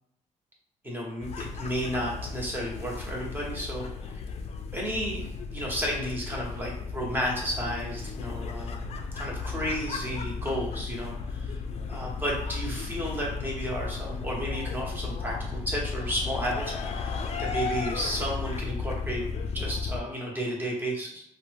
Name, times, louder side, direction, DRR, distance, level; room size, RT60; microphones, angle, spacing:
voice 1, 0.8-4.2 4.7-5.3 5.5-8.9 9.1-11.6 11.9-19.2 19.5-21.2, equal, 15° right, -3 dB, 0.9 m, -32 dB
sound 1, 1.2-20.0, left 4 dB, 50° left, 0.4 m, -34 dB
2.7 x 2.1 x 3.2 m, 0.75 s
cardioid pair, 110°, 13 cm